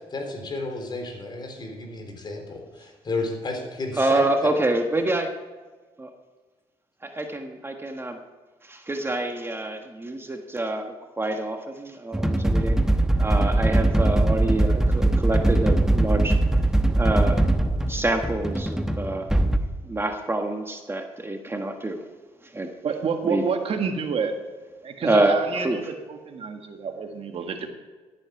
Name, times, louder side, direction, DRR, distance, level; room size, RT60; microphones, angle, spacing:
voice 1, 0.1-4.5, left 2 dB, 40° left, 3 dB, 3.8 m, -32 dB
voice 2, 4.0-5.3 6.0-6.1 7.0-8.2 8.6-12.8 13.2-16.4 16.9-17.4 17.9-19.3 19.8-22.0 22.4-22.7 23.2-23.4 25.0-25.8, right 2 dB, 20° right, 4 dB, 1.4 m, -26 dB
sound 1, 12.1-19.6, right 1 dB, 5° right, 1.1 m, -21 dB
voice 3, 22.8-24.3 24.8-27.7, right 5 dB, 60° right, 5 dB, 1.7 m, -28 dB
13.5 x 8.8 x 5.9 m, 1.4 s
cardioid pair, 70°, 11 cm